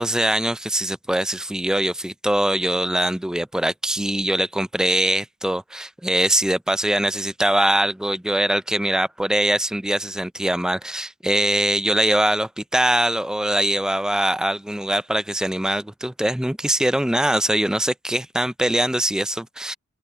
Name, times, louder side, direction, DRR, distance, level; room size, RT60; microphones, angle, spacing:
voice 1, 0.0-19.8, right 1 dB, 5° right, 0.3 m, -22 dB
open air
head